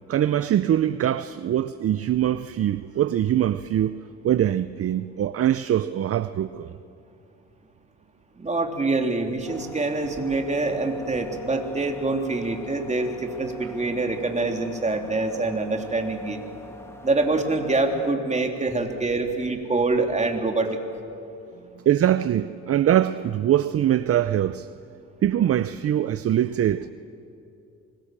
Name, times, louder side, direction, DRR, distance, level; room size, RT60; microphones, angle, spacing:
voice 1, 0.1-6.8 21.8-24.7 25.2-26.9, right 11 dB, 50° right, 0.6 m, -23 dB
voice 2, 8.4-16.4 17.0-20.8, right 3 dB, 25° right, 3.0 m, -25 dB
sound 1, 9.5-18.1, left 1 dB, 10° left, 2.7 m, -43 dB
25.0 x 21.5 x 7.4 m
cardioid pair, 90°, 30 cm